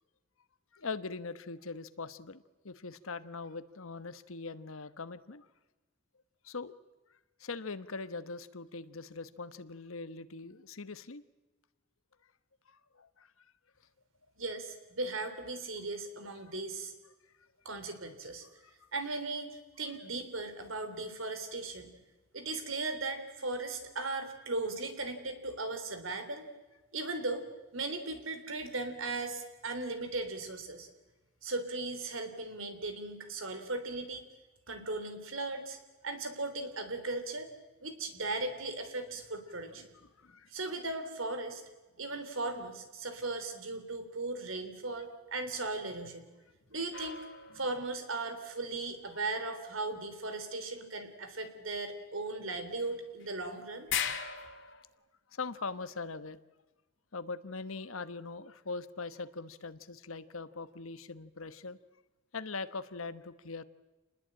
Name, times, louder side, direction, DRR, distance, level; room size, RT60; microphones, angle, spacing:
voice 1, 0.7-5.5 6.4-6.7 7.4-11.2 12.7-13.4 17.4-17.5 18.6-18.9 39.9-40.5 54.4-54.5 55.3-56.4 57.1-61.8 62.3-63.6, left 4 dB, 75° left, 13 dB, 1.1 m, -42 dB
voice 2, 14.4-16.9 17.7-18.4 18.9-21.9 22.3-26.5 26.9-27.4 27.7-30.9 31.4-34.3 34.7-37.5 37.8-39.9 40.5-41.6 42.0-46.3 46.7-47.3 47.5-53.9, right 2 dB, 70° right, 8 dB, 3.5 m, -37 dB
sound 1, 46.9-48.2 52.8-52.9 53.2-53.3 53.9-54.8, left 8 dB, 60° left, 2.2 m, -37 dB
27.5 x 20.5 x 8.9 m, 1.1 s
head